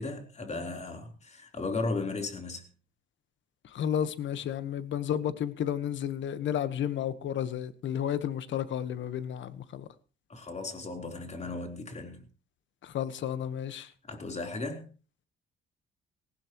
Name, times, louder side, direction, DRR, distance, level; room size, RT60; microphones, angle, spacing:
voice 1, 0.0-2.7 10.3-12.2 14.0-14.9, left 3 dB, 35° left, 4.0 m, -36 dB
voice 2, 3.7-9.9 12.8-13.9, left 9 dB, 70° left, 1.3 m, -32 dB
19.0 x 15.5 x 3.1 m
cardioid pair, 90°, 20 cm